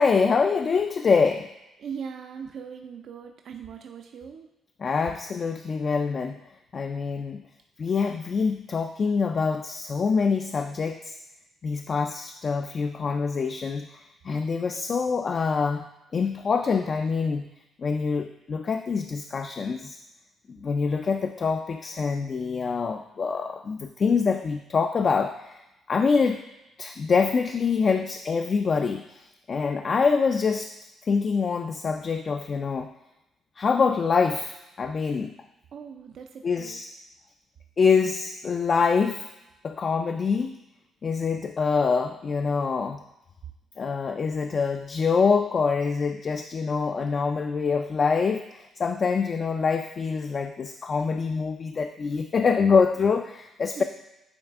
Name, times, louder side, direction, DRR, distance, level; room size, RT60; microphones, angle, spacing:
voice 1, 0.0-1.5 4.8-6.4 6.7-7.4 7.8-11.1 11.6-15.8 16.1-17.5 17.8-20.0 20.5-25.6 25.9-26.4 26.8-29.2 29.5-30.7 31.0-32.9 33.6-35.3 36.4-36.9 37.8-39.3 39.6-40.6 41.0-43.0 43.8-53.8, left 5 dB, 45° left, 6 dB, 0.3 m, -25 dB
voice 2, 1.8-4.5 35.7-36.8 53.8-53.9, right 7 dB, 65° right, 4 dB, 0.4 m, -39 dB
8.9 x 3.2 x 3.5 m, 0.94 s
cardioid pair, 90°, 0 cm